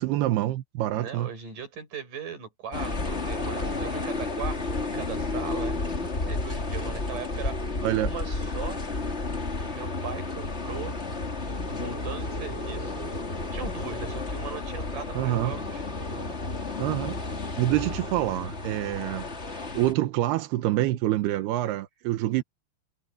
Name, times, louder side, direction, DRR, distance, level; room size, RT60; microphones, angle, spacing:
voice 1, 0.0-1.3 7.8-8.1 15.2-15.5 16.8-17.2 17.6-19.3 19.7-22.4, right 15 dB, 75° right, 2.6 m, -26 dB
voice 2, 0.9-7.6 8.0-8.8 9.6-11.0 11.7-13.1 13.5-16.4 21.6-21.7, right 7 dB, 45° right, 6.5 m, -39 dB
sound 1, 2.7-19.9, left 3 dB, 55° left, 0.7 m, -32 dB
omnidirectional pair, 5.6 m